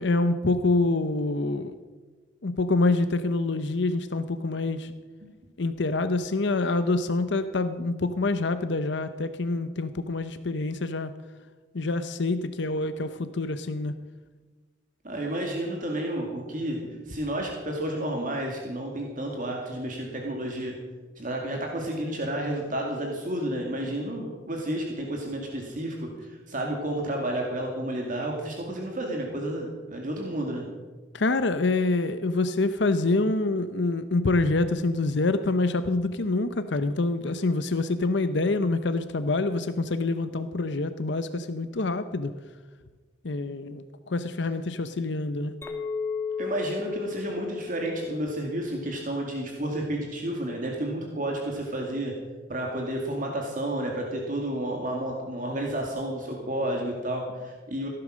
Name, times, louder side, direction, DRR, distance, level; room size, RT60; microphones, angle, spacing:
voice 1, 0.0-1.7 2.4-4.9 5.6-11.1 11.7-13.9 31.1-42.3 43.2-43.8 44.1-45.5, left 2 dB, 65° left, 11 dB, 0.7 m, -26 dB
voice 2, 15.0-20.8 21.2-30.6 46.4-52.1 52.5-57.9, right 1 dB, 45° right, 0 dB, 2.2 m, -31 dB
Chink clink, 45.6-50.1, left 6 dB, 15° left, 1.6 m, -36 dB
16.5 x 11.0 x 6.3 m, 1.4 s
head